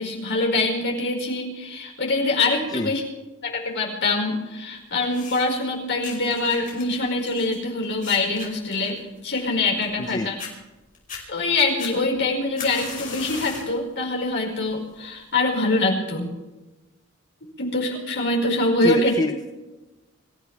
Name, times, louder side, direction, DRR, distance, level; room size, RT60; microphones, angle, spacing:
voice 1, 0.0-3.0 3.4-10.3 11.3-16.3 17.6-19.1, left 2 dB, 55° left, -1 dB, 5.2 m, -24 dB
sound 1, 5.0-5.6 6.0-10.1 10.4-10.5 10.9-11.2 11.8-13.8 14.2-14.6 15.3-15.4, left 6 dB, 40° left, 5.7 m, -38 dB
voice 2, 10.0-10.3 18.8-19.5, left 2 dB, 20° left, 5 dB, 0.7 m, -26 dB
26.5 x 15.0 x 3.5 m, 1.1 s
head